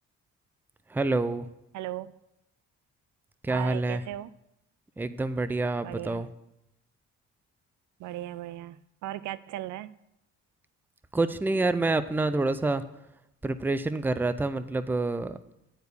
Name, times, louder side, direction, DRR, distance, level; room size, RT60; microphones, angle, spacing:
voice 1, 0.9-1.5 3.4-4.0 5.0-6.3 11.1-12.8 13.4-15.4, right 2 dB, 5° right, 13 dB, 0.4 m, -27 dB
voice 2, 1.7-2.1 3.5-4.3 5.8-6.2 8.0-9.9, right 14 dB, 75° right, 18 dB, 0.4 m, -37 dB
10.0 x 4.6 x 6.8 m, 0.86 s
cardioid pair, 90°, 30 cm